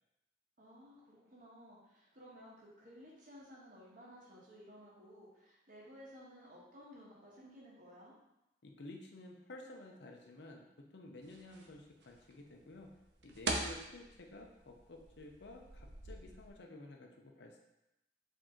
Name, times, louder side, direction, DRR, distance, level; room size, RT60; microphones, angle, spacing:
voice 1, 0.6-8.1, equal, 45° right, -5 dB, 1.3 m, -56 dB
voice 2, 8.6-12.9 13.2-17.6, left 2 dB, 75° left, 2 dB, 0.6 m, -52 dB
sound 1, 11.2-16.5, right 2 dB, 75° right, 0.6 m, -44 dB
4.9 x 2.8 x 3.8 m, 0.91 s
head